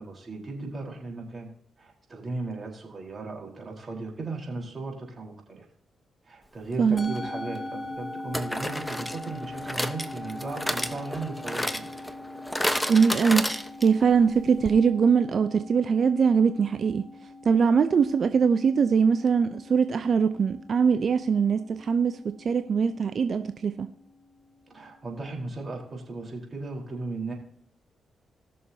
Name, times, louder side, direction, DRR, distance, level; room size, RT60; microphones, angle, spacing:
voice 1, 0.0-1.5 1.8-5.6 6.3-11.9 24.7-27.3, right 3 dB, 40° right, -1 dB, 4.1 m, -36 dB
voice 2, 6.8-7.1 12.9-13.5 13.8-17.0 17.4-23.9, right 6 dB, 60° right, 9 dB, 0.6 m, -22 dB
Musical instrument, 7.0-25.5, left 2 dB, 30° left, 1.9 m, -43 dB
sound 1, 7.0-7.2 8.3-14.1 14.4-14.5 14.7-14.8, equal, 5° left, 1.1 m, -31 dB
19.5 x 6.6 x 2.8 m, 0.68 s
supercardioid pair, 45°, 0 cm